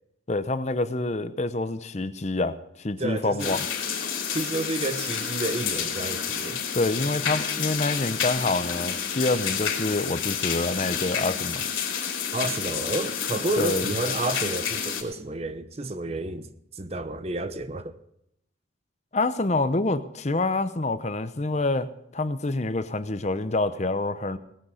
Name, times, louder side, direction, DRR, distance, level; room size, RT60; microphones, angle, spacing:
voice 1, 0.3-3.7 6.7-11.6 13.6-13.9 19.1-24.4, left 2 dB, 35° left, 0.7 m, -27 dB
voice 2, 3.0-3.6 4.3-6.6 12.3-18.0, right 2 dB, 30° right, 0.7 m, -30 dB
sound 1, 3.4-15.0, left 7 dB, 90° left, 2.9 m, -29 dB
18.0 x 9.7 x 5.1 m
head